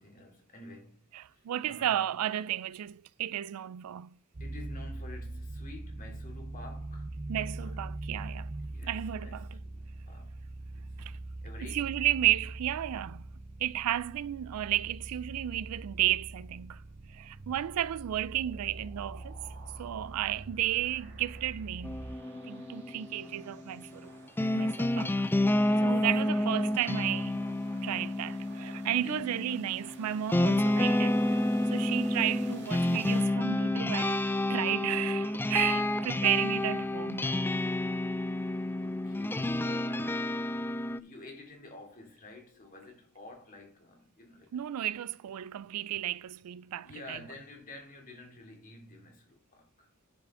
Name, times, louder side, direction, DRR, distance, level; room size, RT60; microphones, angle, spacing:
voice 1, 0.0-2.1 4.4-7.9 8.6-10.4 11.4-12.0 25.5-26.1 28.7-29.3 38.8-44.6 46.8-49.9, left 2 dB, 40° left, 2.7 m, -50 dB
voice 2, 1.1-4.1 7.3-8.5 8.9-9.5 11.0-11.2 11.6-13.2 13.6-16.8 17.1-19.4 19.8-22.0 22.5-24.1 24.5-25.1 25.8-27.4 27.8-34.2 34.5-37.3 44.5-47.2, right 12 dB, 80° right, 0.3 m, -33 dB
sound 1, 4.3-22.2, right 2 dB, 35° right, 0.6 m, -42 dB
sound 2, 18.5-33.2, right 5 dB, 55° right, 1.6 m, -55 dB
sound 3, 21.8-41.0, left 1 dB, 10° left, 0.3 m, -30 dB
10.5 x 6.8 x 3.7 m
head